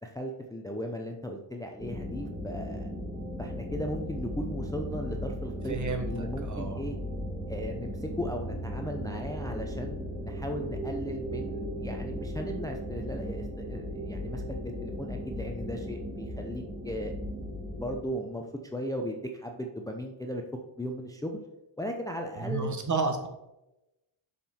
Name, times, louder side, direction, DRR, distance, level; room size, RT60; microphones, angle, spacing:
voice 1, 0.0-2.9 3.4-5.8 6.0-7.0 7.5-17.1 17.7-20.4 20.8-21.4 21.8-22.8, equal, 5° left, 2 dB, 0.6 m, -37 dB
sound 1, 1.8-18.0, equal, 15° right, 2.8 m, -36 dB
voice 2, 5.7-6.8 22.4-23.3, right 4 dB, 35° right, 4 dB, 1.3 m, -31 dB
7.3 x 5.7 x 4.3 m, 0.94 s
wide cardioid pair, 135°, 49 cm